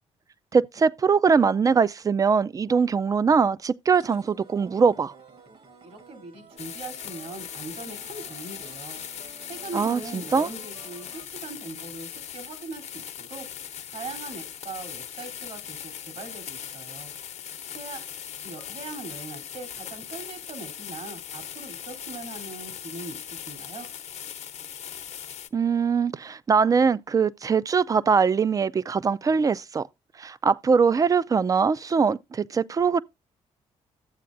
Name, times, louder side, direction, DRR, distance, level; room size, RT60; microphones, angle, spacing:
voice 1, 0.5-5.1 9.7-10.5 25.5-29.9 30.2-33.0, right 5 dB, 30° right, 0.4 m, -22 dB
sound 1, 3.9-11.3, right 4 dB, 50° right, 1.4 m, -51 dB
voice 2, 5.8-9.0 9.4-13.5 13.9-17.1 17.7-18.0 18.4-23.9, right 3 dB, 70° right, 3.3 m, -40 dB
sound 2, 6.6-25.5, left 9 dB, 60° left, 0.9 m, -39 dB
12.5 x 7.6 x 2.6 m
cardioid pair, 95°, 12 cm